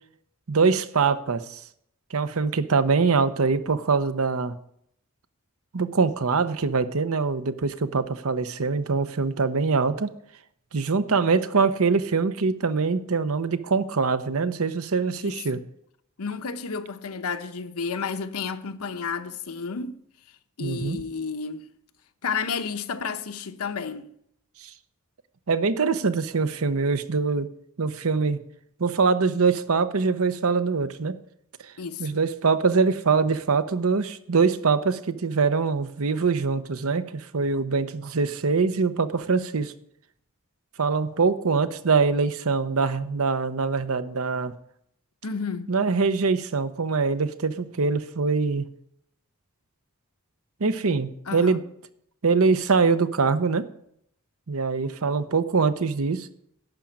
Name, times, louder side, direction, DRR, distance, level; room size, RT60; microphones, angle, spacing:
voice 1, 0.5-1.6 2.1-4.5 5.7-10.1 10.7-15.6 20.6-21.0 24.6-24.7 25.5-27.5 27.8-28.4 28.8-31.2 31.6-31.7 32.0-39.7 40.8-44.5 45.7-48.7 50.6-51.6 52.2-53.6 54.5-56.3, right 4 dB, 70° right, 0.8 m, -23 dB
voice 2, 15.2-15.6 16.2-20.0 20.6-21.7 22.2-24.1 31.8-32.1 45.2-45.7 51.3-51.6, left 5 dB, 85° left, 0.9 m, -31 dB
12.0 x 5.2 x 8.7 m
head